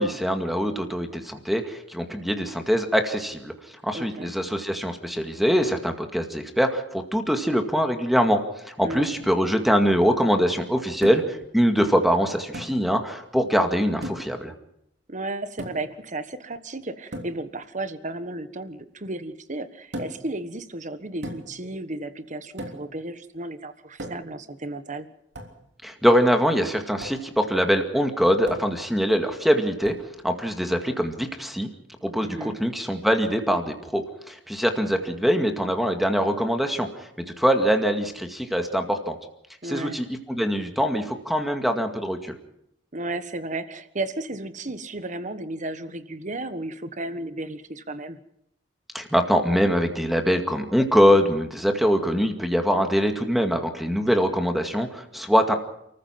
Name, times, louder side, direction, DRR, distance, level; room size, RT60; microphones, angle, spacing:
voice 1, 0.0-3.5 3.8-14.5 25.8-29.9 30.2-31.7 32.0-36.9 37.4-39.2 39.6-42.4 48.9-55.5, equal, ahead, 5 dB, 2.1 m, -23 dB
voice 2, 3.9-4.3 8.8-9.2 15.1-25.1 32.2-32.6 39.6-40.0 42.9-48.2, right 2 dB, 40° right, 11 dB, 1.4 m, -34 dB
sound 1, 11.0-11.4 12.5-12.8 14.0-14.4 15.6-16.0 17.1-17.4 19.9-20.3 21.2-21.6 22.6-22.9 24.0-24.4 25.3-25.6 27.0-27.2 28.5-28.8 29.8-30.1, right 1 dB, 65° right, 3.3 m, -36 dB
29.5 x 14.5 x 5.9 m, 0.77 s
head